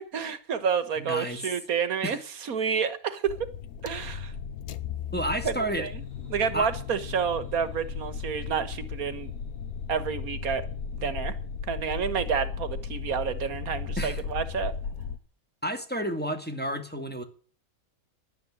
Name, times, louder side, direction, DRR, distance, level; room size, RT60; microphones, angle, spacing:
voice 1, 0.1-3.4 3.8-4.3 5.4-5.9 6.3-9.3 9.9-10.6 10.9-11.3 11.7-14.7, right 6 dB, 90° right, 1.8 m, -29 dB
voice 2, 1.0-1.4 2.0-2.2 5.1-5.9 6.5-6.7 14.0-14.2 15.6-17.2, equal, 5° left, 2.3 m, -31 dB
sound 1, 3.3-15.2, left 6 dB, 90° left, 1.3 m, -36 dB
sound 2, 5.7-13.2, left 1 dB, 40° left, 7.8 m, -59 dB
12.0 x 9.5 x 9.1 m
omnidirectional pair, 1.5 m